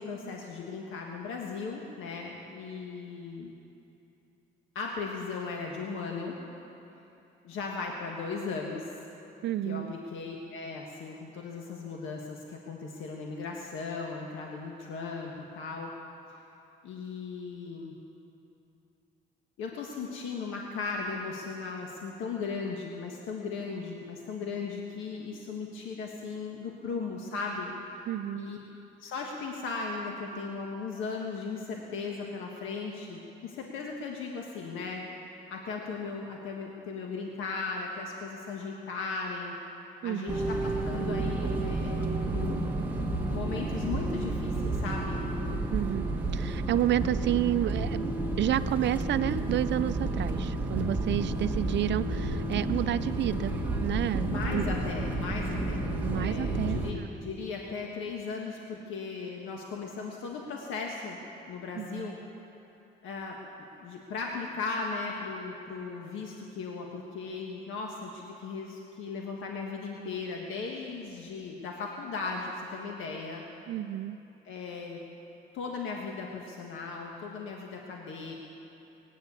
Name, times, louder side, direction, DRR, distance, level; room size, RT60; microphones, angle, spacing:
voice 1, 0.0-3.5 4.7-6.3 7.4-9.0 9.6-15.9 16.8-17.9 19.6-28.1 28.4-28.6 29.0-35.0 35.5-39.5 40.0-45.2 54.3-61.2 61.5-62.2 63.0-63.4 63.8-73.4 74.4-75.0 75.5-78.3, left 4 dB, 85° left, 0 dB, 1.6 m, -37 dB
voice 2, 9.4-9.9 28.1-28.5 40.0-40.3 45.7-54.7 56.0-57.1 61.8-62.1 73.7-74.2, right 12 dB, 65° right, 13 dB, 0.6 m, -30 dB
sound 1, 40.3-56.9, right 2 dB, 10° right, 1.7 m, -31 dB
18.5 x 9.2 x 8.3 m, 2.9 s
cardioid pair, 90°, 20 cm